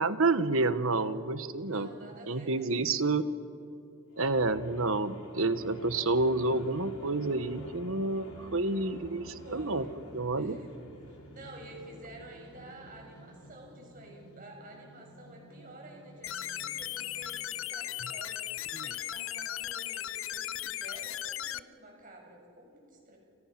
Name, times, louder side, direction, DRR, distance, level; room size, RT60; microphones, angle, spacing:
voice 1, 0.0-1.9 2.3-3.2 4.2-9.9 10.1-10.6 18.7-18.9, right 3 dB, 70° right, 12 dB, 1.2 m, -29 dB
voice 2, 1.5-2.9 9.4-10.0 10.4-10.7 11.1-18.5 18.8-23.2, right 1 dB, 40° right, 1 dB, 6.6 m, -50 dB
sound 1, 4.1-17.4, equal, 85° left, 4.4 m, -50 dB
sound 2, 16.2-21.6, left 12 dB, 60° left, 0.5 m, -37 dB
29.5 x 28.5 x 6.0 m, 2.5 s
head